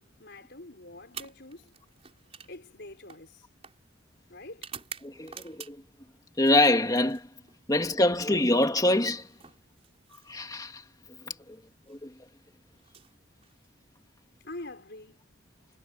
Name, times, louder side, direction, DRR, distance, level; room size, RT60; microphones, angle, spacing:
voice 1, 0.0-3.5 4.3-4.7 14.4-15.2, left 2 dB, 60° left, 5.2 m, -46 dB
sound 1, 1.0-6.0 6.4-7.6 8.8-10.6 11.7-12.0 12.8-13.9, right 7 dB, 35° right, 5.1 m, -48 dB
voice 2, 5.0-5.8 6.4-7.3 7.7-9.3 10.3-10.8 11.2-11.6 11.9-12.1, left 1 dB, 20° left, 2.4 m, -25 dB
head